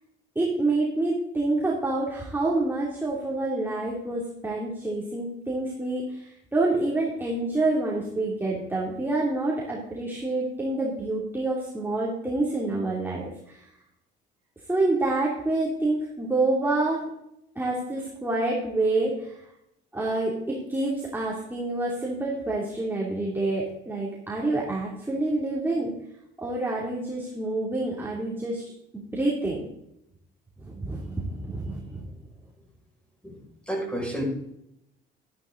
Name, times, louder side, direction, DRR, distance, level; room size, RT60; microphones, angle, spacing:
voice 1, 0.3-13.7 14.7-17.0 17.5-19.4 19.9-25.9 26.4-28.6 28.9-29.7 30.6-32.1, right 2 dB, 10° right, -4 dB, 2.9 m, -27 dB
voice 2, 33.7-34.2, right 1 dB, 5° left, -1 dB, 6.1 m, -30 dB
13.0 x 11.0 x 4.0 m, 0.80 s
cardioid pair, 90°, 21 cm